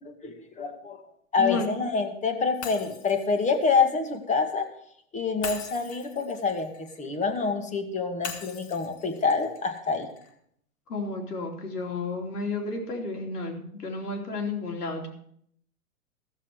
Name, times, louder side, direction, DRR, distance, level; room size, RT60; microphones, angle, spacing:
voice 1, 0.0-1.0 1.3-4.7 5.1-10.1, left 4 dB, 15° left, 6 dB, 1.6 m, -27 dB
Shatter, 2.6-4.7 5.4-7.5 8.2-10.3, left 6 dB, 35° left, 2.0 m, -42 dB
voice 2, 10.9-15.1, left 3 dB, 85° left, 2 dB, 3.1 m, -32 dB
14.5 x 7.2 x 6.2 m, 0.67 s
hypercardioid pair, 115°, 45 cm